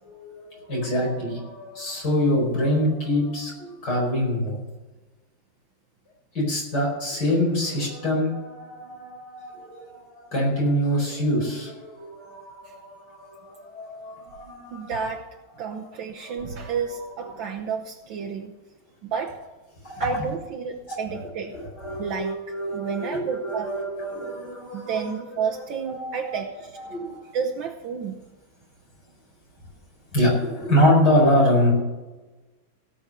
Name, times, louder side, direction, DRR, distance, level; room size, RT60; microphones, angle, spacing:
voice 1, 0.0-4.6 6.3-14.9 15.6-15.8 16.2-17.0 19.8-20.2 20.9-26.4 26.8-27.3 30.1-31.7, equal, 55° left, -3 dB, 5.5 m, -25 dB
voice 2, 14.7-15.3 15.6-18.5 19.0-19.4 20.0-21.5 22.0-23.7 24.7-26.8 27.3-28.1, right 6 dB, 70° right, 2 dB, 1.6 m, -31 dB
17.0 x 6.2 x 6.7 m, 1.1 s
omnidirectional pair, 2.2 m